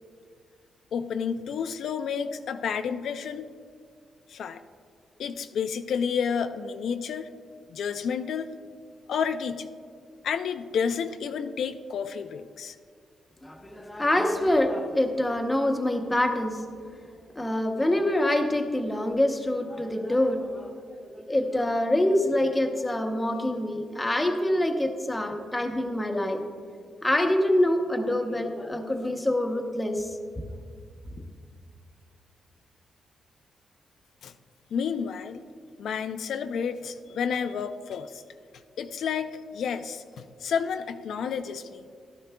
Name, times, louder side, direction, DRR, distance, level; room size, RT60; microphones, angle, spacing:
voice 1, 0.9-3.5 4.3-4.6 5.2-7.3 7.7-8.6 9.1-9.7 10.2-12.8 34.2-34.3 34.7-35.4 35.8-38.2 38.8-41.9, left 6 dB, 70° left, 8 dB, 0.4 m, -30 dB
voice 2, 13.4-16.6 17.4-26.4 27.0-30.2, left 1 dB, 10° left, 4 dB, 0.8 m, -26 dB
15.0 x 12.0 x 2.3 m, 2.1 s
wide cardioid pair, 155°, 0 cm